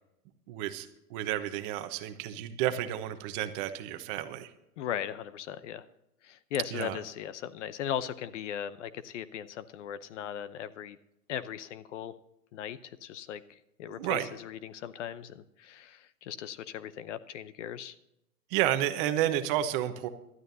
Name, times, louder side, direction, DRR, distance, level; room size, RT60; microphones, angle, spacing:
voice 1, 0.5-4.5 6.7-7.0 13.9-14.3 18.5-20.1, right 12 dB, 35° right, 9 dB, 1.1 m, -31 dB
voice 2, 4.8-5.8 6.2-11.0 11.3-12.1 12.5-17.9, left 10 dB, 50° left, 15 dB, 0.8 m, -38 dB
19.0 x 12.5 x 2.8 m, 0.85 s
hypercardioid pair, 140°, 46 cm